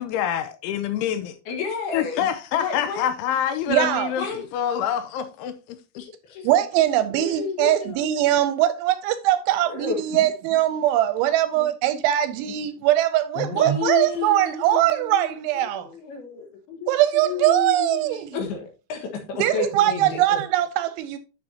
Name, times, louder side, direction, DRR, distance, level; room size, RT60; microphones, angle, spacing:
voice 1, 0.0-1.4 1.9-5.8, left 9 dB, 85° left, 3.1 m, -26 dB
voice 2, 1.5-2.3 2.6-3.1 4.1-4.4 6.0-6.6 7.1-8.1 9.6-10.3 11.5-11.7 13.4-15.3 15.6-20.4, left 6 dB, 65° left, 3.0 m, -32 dB
voice 3, 3.7-4.1 6.4-15.9 16.9-18.3 19.4-21.2, right 13 dB, 80° right, 2.8 m, -21 dB
10.0 x 6.9 x 2.8 m
omnidirectional pair, 5.7 m